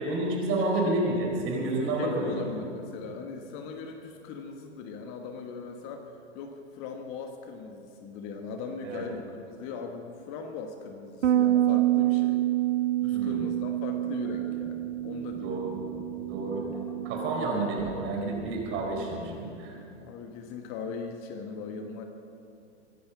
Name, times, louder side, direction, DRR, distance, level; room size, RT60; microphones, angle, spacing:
voice 1, 0.0-2.5 8.8-9.0 13.1-13.4 15.4-15.8 16.3-16.6 17.0-19.8, right 2 dB, 35° right, 0 dB, 4.6 m, -30 dB
voice 2, 2.0-12.4 13.0-15.7 20.0-22.0, left 5 dB, 35° left, 5 dB, 1.3 m, -39 dB
Bass guitar, 11.2-17.5, right 14 dB, 90° right, 0.5 m, -27 dB
sound 1, 14.2-19.5, equal, ahead, 3.1 m, -48 dB
23.5 x 10.5 x 5.9 m, 2.6 s
hypercardioid pair, 120°, 36 cm